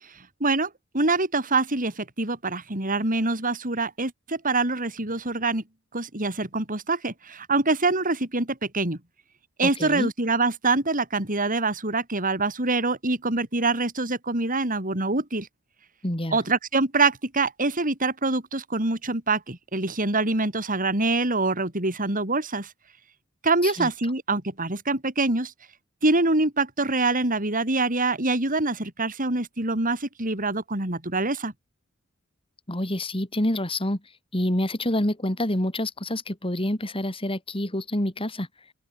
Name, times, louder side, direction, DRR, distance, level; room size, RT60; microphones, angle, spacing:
voice 1, 0.0-5.6 5.9-9.0 9.6-15.5 16.3-22.7 23.4-25.5 26.0-31.5, right 3 dB, 40° right, 4.6 m, -25 dB
voice 2, 9.6-10.1 16.0-16.4 23.6-23.9 32.7-34.0 34.3-38.5, left 1 dB, 25° left, 3.4 m, -27 dB
open air
head